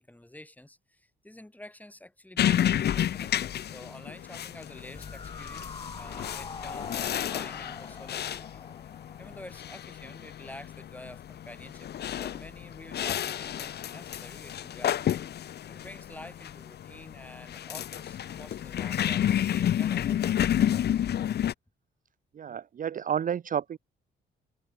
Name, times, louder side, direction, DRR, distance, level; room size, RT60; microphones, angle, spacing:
voice 1, 0.0-8.9 9.2-11.9 12.2-15.2 15.7-20.3, left 1 dB, 10° left, 4.0 m, -49 dB
sound 1, 2.4-21.5, left 10 dB, 55° left, 0.8 m, -31 dB
sound 2, 4.9-10.2 10.5-10.6, left 4 dB, 25° left, 1.2 m, -44 dB
voice 2, 22.3-23.8, right 8 dB, 45° right, 0.6 m, -30 dB
cardioid pair, 90°, 20 cm